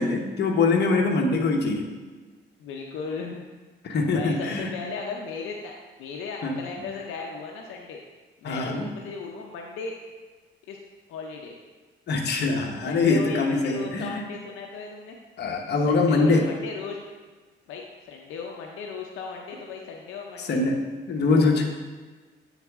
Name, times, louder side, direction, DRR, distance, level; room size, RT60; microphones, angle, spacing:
voice 1, 0.0-1.9 3.8-4.7 6.4-6.9 8.4-8.9 12.1-14.2 15.4-16.5 20.4-20.8 21.1-21.6, left 3 dB, 60° left, 2 dB, 1.0 m, -23 dB
voice 2, 2.6-3.4 4.1-5.7 6.0-8.0 8.4-9.9 10.7-10.8 11.1-11.6 12.9-15.2 15.7-17.0 17.7-20.6 21.3-21.6, left 5 dB, 85° left, 1 dB, 0.6 m, -36 dB
8.2 x 4.0 x 3.5 m, 1.3 s
cardioid pair, 90°, 20 cm